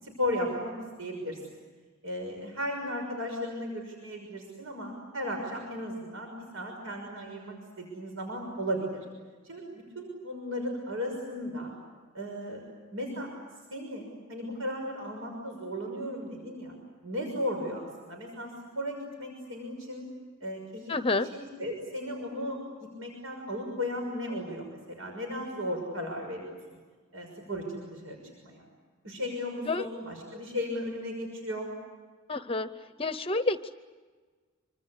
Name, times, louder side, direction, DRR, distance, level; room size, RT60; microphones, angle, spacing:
voice 1, 0.0-0.7 1.0-1.4 2.0-9.0 9.4-11.7 12.1-12.6 12.9-13.3 13.7-16.7 17.0-20.1 20.4-22.6 23.0-26.6 27.1-28.2 28.4-28.6 29.0-31.7, left 1 dB, 80° right, 2 dB, 6.2 m, -35 dB
voice 2, 20.9-21.3 29.7-29.9 32.3-32.7 33.0-33.8, left 2 dB, 25° left, 11 dB, 0.7 m, -29 dB
27.0 x 25.5 x 8.2 m, 1.4 s
head